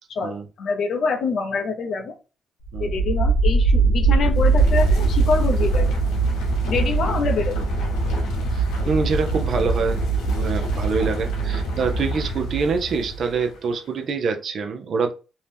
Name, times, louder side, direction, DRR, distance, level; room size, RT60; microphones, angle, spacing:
voice 1, 0.1-2.1 2.8-6.0 6.7-7.5, left 4 dB, 65° left, 5 dB, 0.6 m, -25 dB
sound 1, 2.6-13.5, right 3 dB, 90° left, 0.9 m, -22 dB
voice 2, 8.5-15.1, right 5 dB, 60° right, 5 dB, 0.5 m, -25 dB
2.7 x 2.1 x 3.3 m, 0.32 s
cardioid pair, 90°, 0 cm